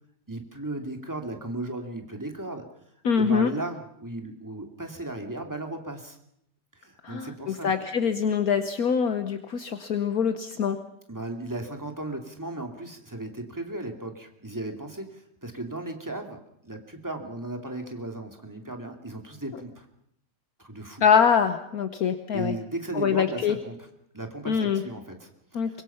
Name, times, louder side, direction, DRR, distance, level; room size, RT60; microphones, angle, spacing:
voice 1, 0.3-2.7 3.2-6.2 6.8-7.7 11.1-19.9 20.6-21.0 22.3-23.8 24.1-25.7, right 2 dB, 10° right, 4 dB, 2.4 m, -36 dB
voice 2, 3.0-3.5 7.0-10.8 21.0-22.5 22.9-23.6 24.4-24.8 25.5-25.8, left 7 dB, 60° left, 8 dB, 1.5 m, -24 dB
24.0 x 22.5 x 5.7 m, 0.73 s
omnidirectional pair, 1.8 m